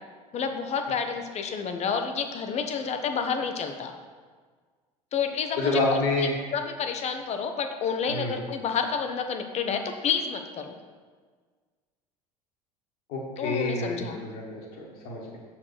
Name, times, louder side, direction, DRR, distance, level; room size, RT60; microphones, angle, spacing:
voice 1, 0.3-4.0 5.1-10.8 13.4-14.2, left 6 dB, 35° left, 6 dB, 0.9 m, -30 dB
voice 2, 5.6-6.3 8.1-8.3 13.1-15.4, left 2 dB, 55° left, -2 dB, 1.8 m, -28 dB
7.1 x 4.4 x 6.7 m, 1.5 s
figure-of-eight pair, 70°, 19 cm